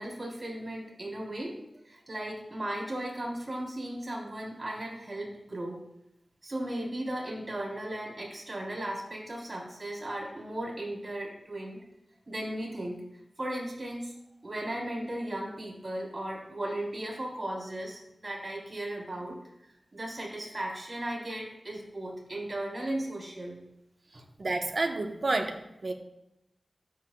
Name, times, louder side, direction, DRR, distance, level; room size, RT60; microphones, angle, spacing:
voice 1, 0.0-1.5 1.8-5.8 6.4-11.8 12.3-13.0 13.4-14.1 14.4-19.4 19.9-23.6 24.1-24.2, right 1 dB, 40° right, -4 dB, 3.7 m, -36 dB
voice 2, 24.4-25.9, right 2 dB, 55° right, 4 dB, 1.1 m, -30 dB
13.0 x 8.0 x 2.3 m, 0.88 s
wide cardioid pair, 80°, 0 cm